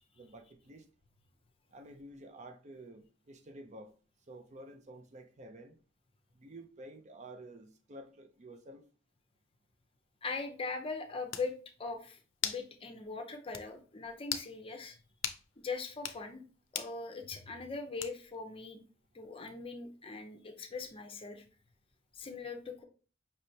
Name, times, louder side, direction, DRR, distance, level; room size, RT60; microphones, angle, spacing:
voice 1, 0.2-0.9 1.7-3.9 4.3-5.8 6.3-8.9, right 1 dB, 35° right, 0.5 m, -51 dB
voice 2, 10.2-11.5 11.8-15.0 15.6-16.4 16.7-18.8 19.1-21.4 22.1-22.8, left 4 dB, 30° left, 0.6 m, -41 dB
sound 1, 10.9-11.0 11.3-11.5 12.4-12.7 13.0-13.1 13.5-13.7 14.2-14.5 15.2-15.4 15.9-16.2 16.7-17.0 18.0-18.4, left 10 dB, 85° left, 0.5 m, -37 dB
5.3 x 3.2 x 2.7 m
head